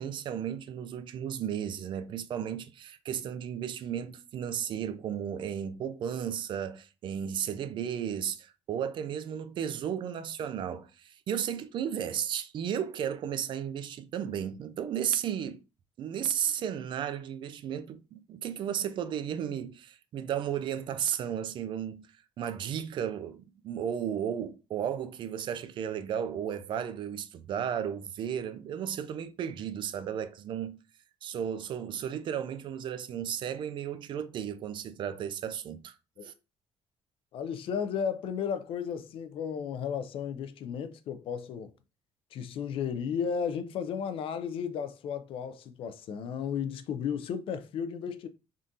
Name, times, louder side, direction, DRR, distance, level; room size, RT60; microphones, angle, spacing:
voice 1, 0.0-15.6 16.0-22.1 22.4-30.8 31.2-35.9 36.2-36.3, right 9 dB, 50° right, 0.3 m, -34 dB
voice 2, 37.3-41.7 42.3-48.3, left 7 dB, 60° left, 0.4 m, -34 dB
3.6 x 2.4 x 2.7 m
cardioid pair, 150°, 10 cm